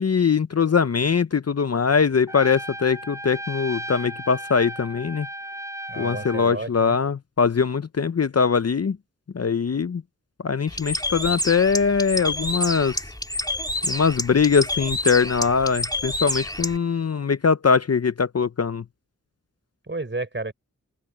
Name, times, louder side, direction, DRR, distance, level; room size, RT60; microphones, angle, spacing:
voice 1, 0.0-5.3 6.0-9.0 9.3-10.0 10.4-13.0 13.8-18.8, left 5 dB, 45° left, 0.7 m, -22 dB
Trumpet, 2.3-6.5, right 1 dB, 10° right, 6.7 m, -35 dB
voice 2, 5.9-7.0 19.9-20.5, right 2 dB, 35° right, 4.7 m, -31 dB
Bird, 10.7-16.8, left 1 dB, 10° left, 2.8 m, -28 dB
open air
cardioid pair, 45°, 34 cm